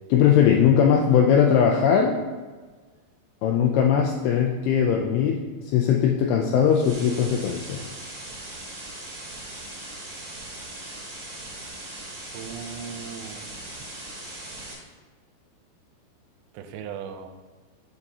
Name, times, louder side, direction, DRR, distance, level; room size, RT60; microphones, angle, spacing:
voice 1, 0.1-2.2 3.4-5.4 5.7-7.8, left 8 dB, 85° left, 1 dB, 2.2 m, -20 dB
sound 1, 6.7-14.7, right 1 dB, 40° right, 2.1 m, -39 dB
voice 2, 12.3-13.5 16.5-17.3, right 7 dB, 85° right, 7 dB, 2.7 m, -37 dB
7.2 x 6.5 x 2.7 m, 1.4 s
omnidirectional pair, 5.0 m